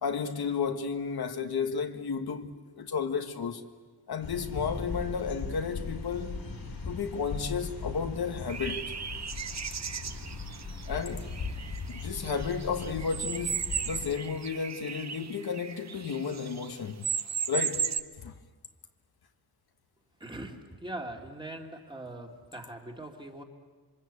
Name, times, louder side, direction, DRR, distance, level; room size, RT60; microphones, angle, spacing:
voice 1, 0.0-3.6 4.1-6.5 6.8-8.9 10.9-11.3 11.9-17.1 17.5-17.9 18.2-18.3, left 6 dB, 70° left, 1.5 m, -33 dB
sound 1, 4.2-14.1, left 4 dB, 85° left, 5.1 m, -39 dB
sound 2, 8.5-16.7 17.0-18.0, right 7 dB, 45° right, 0.8 m, -36 dB
voice 2, 20.2-23.4, right 1 dB, 10° right, 2.3 m, -41 dB
27.0 x 24.5 x 8.4 m
wide cardioid pair, 165°, 39 cm